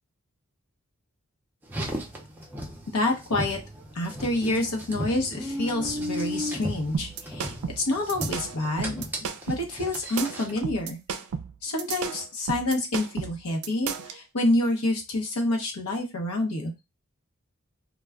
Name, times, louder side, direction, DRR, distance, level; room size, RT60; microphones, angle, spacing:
Car, 1.6-10.6, equal, 10° right, 0.5 m, -35 dB
voice 1, 2.9-3.6 3.9-9.0 9.5-11.0 11.6-16.7, left 2 dB, 85° left, 1 dB, 0.8 m, -28 dB
sound 1, 6.9-14.2, right 6 dB, 75° right, 0.4 m, -33 dB
2.3 x 2.2 x 3.5 m, 0.25 s
head